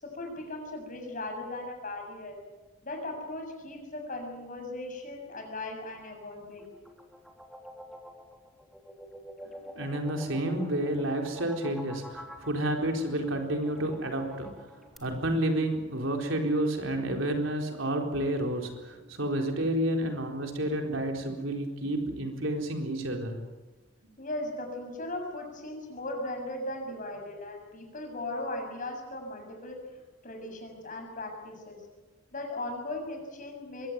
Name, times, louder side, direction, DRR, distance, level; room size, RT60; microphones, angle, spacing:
voice 1, 0.0-2.4 2.8-6.7 24.2-29.8 30.2-31.8 32.3-33.9, left 2 dB, 40° left, 2 dB, 7.1 m, -38 dB
sound 1, 6.5-15.0, equal, ahead, 3.1 m, -47 dB
voice 2, 9.8-14.7 15.0-23.4, right 1 dB, 75° right, 3 dB, 4.3 m, -30 dB
23.0 x 17.0 x 9.5 m, 1.2 s
head